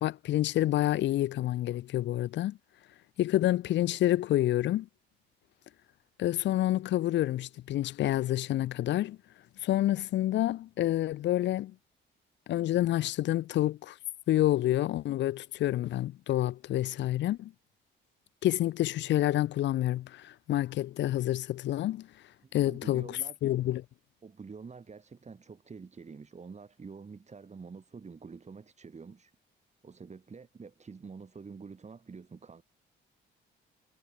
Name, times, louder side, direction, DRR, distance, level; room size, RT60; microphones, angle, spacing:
voice 1, 0.0-2.6 3.2-4.9 6.2-9.2 9.6-11.7 12.5-14.0 14.3-17.5 18.4-22.1 22.5-23.8, left 14 dB, 65° left, 0.5 m, -28 dB
voice 2, 22.4-23.4 24.2-29.3 29.8-32.6, right 5 dB, 35° right, 7.5 m, -47 dB
cardioid pair, 90°, 20 cm